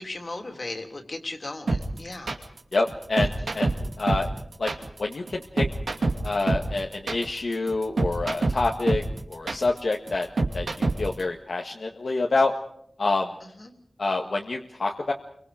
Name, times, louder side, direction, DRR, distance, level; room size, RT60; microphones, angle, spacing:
voice 1, 0.0-2.3 13.6-13.7, left 2 dB, 50° left, 4 dB, 3.3 m, -36 dB
sound 1, 1.7-11.2, right 3 dB, 90° right, 2.6 m, -26 dB
voice 2, 2.7-4.3 4.6-4.7 5.0-5.7 6.2-10.3 10.5-12.5 13.0-13.3 14.0-15.1, left 3 dB, 75° left, 0 dB, 1.8 m, -27 dB
29.0 x 24.5 x 5.1 m, 0.70 s
wide cardioid pair, 80°, 0 cm